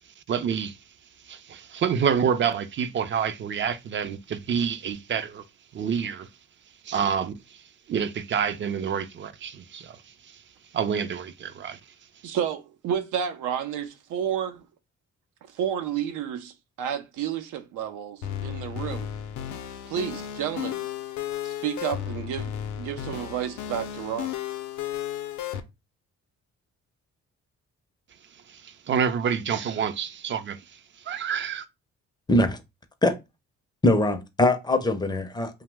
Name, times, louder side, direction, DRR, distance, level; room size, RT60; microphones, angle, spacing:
voice 1, 0.3-0.8 1.3-5.4 5.7-6.3 6.8-7.3 7.9-10.0 10.7-11.8 28.5-30.6 31.1-31.6, right 7 dB, 40° right, 0.4 m, -27 dB
voice 2, 12.2-14.6 15.5-19.1 19.8-20.9 21.4-24.4, right 9 dB, 85° right, 0.6 m, -31 dB
sound 1, 18.2-25.6, left 10 dB, 80° left, 0.5 m, -34 dB
voice 3, 32.3-32.6 33.0-33.1 33.8-35.6, left 1 dB, 15° left, 0.4 m, -22 dB
2.8 x 2.0 x 3.2 m
cardioid pair, 90°, 30 cm